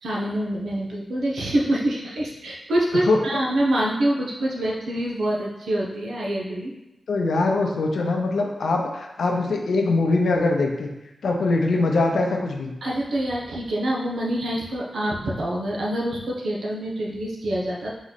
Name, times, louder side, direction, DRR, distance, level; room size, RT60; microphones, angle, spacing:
voice 1, 0.0-6.7 12.8-17.9, right 1 dB, 85° right, -4 dB, 0.9 m, -26 dB
voice 2, 7.1-10.9 11.2-12.7, left 3 dB, 80° left, 2 dB, 0.6 m, -22 dB
4.0 x 3.1 x 4.0 m, 0.94 s
wide cardioid pair, 170°, 0 cm